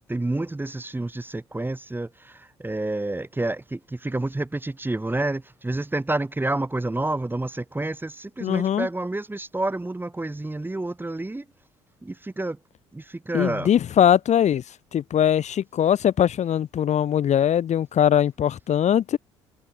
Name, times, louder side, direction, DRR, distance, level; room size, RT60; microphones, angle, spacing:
voice 1, 0.1-11.5 12.0-12.6 12.9-13.7, right 2 dB, 15° right, 2.5 m, -29 dB
voice 2, 8.4-8.9 13.3-14.6 14.9-19.2, left 9 dB, 50° left, 3.1 m, -21 dB
hypercardioid pair, 50°, 15 cm